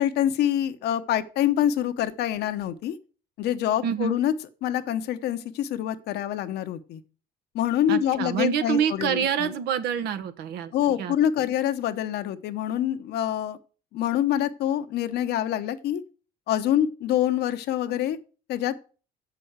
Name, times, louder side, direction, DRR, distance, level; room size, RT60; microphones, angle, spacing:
voice 1, 0.0-3.0 3.4-4.3 4.6-7.0 7.5-9.5 10.7-13.6 13.9-16.0 16.5-18.2 18.5-18.8, left 11 dB, 75° left, 0.9 m, -26 dB
voice 2, 3.8-4.2 7.9-10.7 11.0-11.1, right 8 dB, 75° right, 1.1 m, -26 dB
7.7 x 6.2 x 7.9 m
cardioid pair, 110°, 17 cm